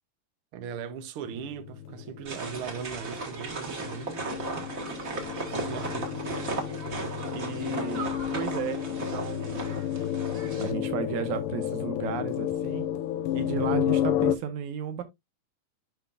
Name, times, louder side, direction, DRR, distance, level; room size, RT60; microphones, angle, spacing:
voice 1, 0.5-4.6 5.4-6.2, right 7 dB, 90° right, 1.2 m, -39 dB
sound 1, 1.3-14.4, left 11 dB, 85° left, 2.4 m, -32 dB
sound 2, 2.2-10.7, right 3 dB, 40° right, 1.3 m, -36 dB
voice 2, 7.3-9.8 10.6-12.9 13.3-15.0, right 8 dB, 70° right, 2.2 m, -34 dB
8.1 x 5.5 x 2.5 m
omnidirectional pair, 3.9 m